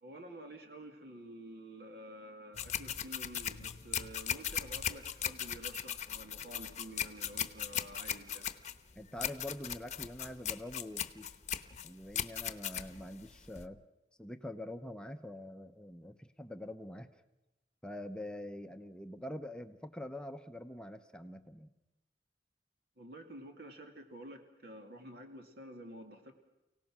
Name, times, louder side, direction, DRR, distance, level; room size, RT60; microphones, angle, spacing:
voice 1, 0.0-8.5 23.0-26.3, right 1 dB, 60° right, 4 dB, 2.3 m, -50 dB
sound 1, 2.5-13.7, left 9 dB, 40° left, 1.0 m, -38 dB
voice 2, 9.0-11.4 11.8-13.8 14.2-17.1 17.8-21.7, left 1 dB, 5° left, 7 dB, 0.8 m, -45 dB
30.0 x 17.5 x 6.1 m, 1.0 s
head